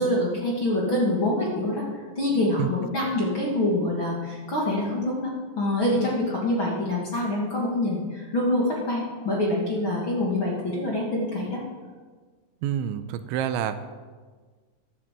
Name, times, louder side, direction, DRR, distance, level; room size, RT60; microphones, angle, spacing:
voice 1, 0.0-1.8 2.2-11.6, left 1 dB, 35° left, -3 dB, 2.2 m, -25 dB
voice 2, 12.6-13.8, right 9 dB, 90° right, 11 dB, 3.0 m, -27 dB
12.5 x 12.0 x 7.5 m, 1.5 s
omnidirectional pair, 5.4 m